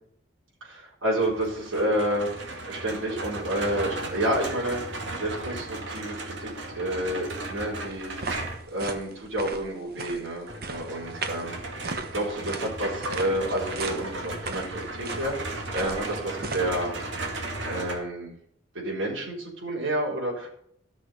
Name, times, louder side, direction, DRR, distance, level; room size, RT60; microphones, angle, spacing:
voice 1, 0.6-2.3 2.7-8.4 8.7-11.6 12.1-16.9 17.6-18.3 18.7-20.5, right 1 dB, 90° right, -5 dB, 4.3 m, -30 dB
sound 1, 1.2-8.8 10.5-18.0, right 2 dB, 70° right, 2.1 m, -35 dB
sound 2, 7.9-16.6, right 4 dB, 50° right, 1.1 m, -38 dB
13.5 x 6.3 x 5.2 m, 0.67 s
head